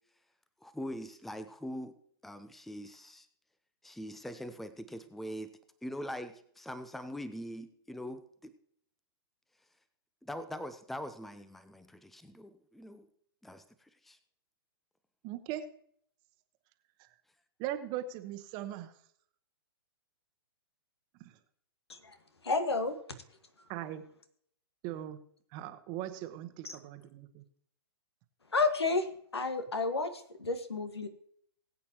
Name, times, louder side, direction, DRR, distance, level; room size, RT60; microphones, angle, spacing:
voice 1, 0.6-1.9 2.2-3.3 3.8-5.5 5.8-8.5 10.2-13.1 13.4-14.2, equal, ahead, 12 dB, 0.6 m, -42 dB
voice 2, 15.2-15.6 17.0-17.1 17.6-18.9 21.2-21.4 23.7-24.0 24.8-25.2 25.5-27.4, right 12 dB, 35° right, 9 dB, 1.1 m, -39 dB
voice 3, 22.4-23.0 26.6-26.8 28.5-29.1 29.3-31.1, left 3 dB, 85° left, 8 dB, 1.7 m, -31 dB
20.5 x 8.5 x 3.0 m, 0.65 s
hypercardioid pair, 125°, 13 cm